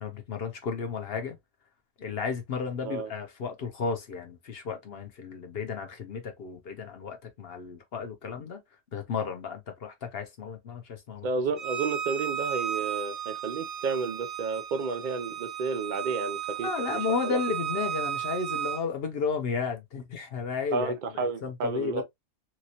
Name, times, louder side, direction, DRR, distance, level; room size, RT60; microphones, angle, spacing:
voice 1, 0.0-1.4 2.0-8.6 8.9-11.3 16.6-22.0, left 5 dB, 55° left, 0.8 m, -33 dB
voice 2, 11.2-17.4 20.7-22.0, right 4 dB, 70° right, 0.4 m, -31 dB
Bowed string instrument, 11.6-18.8, right 10 dB, 35° right, 0.6 m, -34 dB
3.0 x 2.9 x 2.7 m
omnidirectional pair, 1.4 m